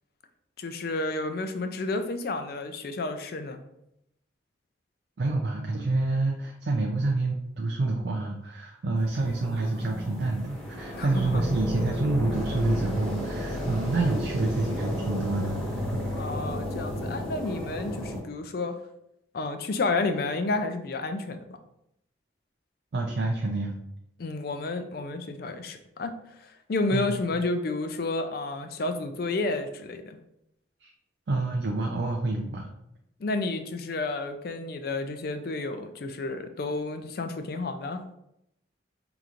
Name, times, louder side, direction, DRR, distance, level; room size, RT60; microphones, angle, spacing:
voice 1, 0.6-3.6 11.0-11.4 16.2-18.8 19.3-21.4 24.2-30.2 33.2-38.0, left 3 dB, 55° left, 8 dB, 0.4 m, -31 dB
voice 2, 5.2-16.0 22.9-23.7 26.9-27.1 30.8-30.9 31.3-32.7, right 2 dB, 65° right, 1 dB, 0.4 m, -28 dB
sound 1, 9.0-18.2, equal, 5° left, 1.2 m, -33 dB
4.9 x 2.9 x 2.5 m, 0.79 s
head